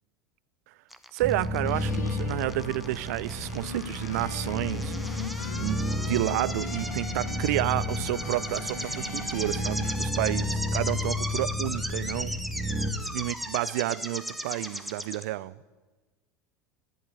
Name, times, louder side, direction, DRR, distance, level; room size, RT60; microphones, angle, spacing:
sound 1, 0.9-15.2, equal, ahead, 1.2 m, -37 dB
voice 1, 1.1-4.9 5.6-12.3 13.0-15.5, right 17 dB, 70° right, 0.5 m, -30 dB
sound 2, 1.2-12.9, left 1 dB, 35° right, 2.0 m, -32 dB
sound 3, 1.6-10.0, left 7 dB, 90° left, 1.4 m, -40 dB
13.5 x 11.5 x 9.2 m
hypercardioid pair, 85°, 9 cm